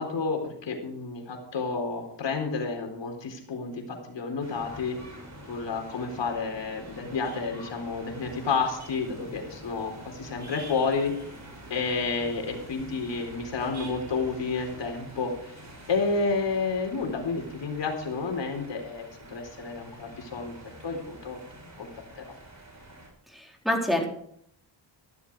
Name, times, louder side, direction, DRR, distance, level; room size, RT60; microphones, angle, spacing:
voice 1, 0.0-5.0 5.5-11.1 11.7-15.5 15.9-20.6 20.8-21.9 22.1-22.2, left 4 dB, 60° left, 3 dB, 4.2 m, -30 dB
sound 1, 4.4-23.1, right 1 dB, 35° right, 7.0 m, -46 dB
voice 2, 23.3-24.1, left 1 dB, ahead, 1 dB, 3.9 m, -27 dB
14.5 x 12.5 x 4.8 m, 0.68 s
cardioid pair, 90°, 48 cm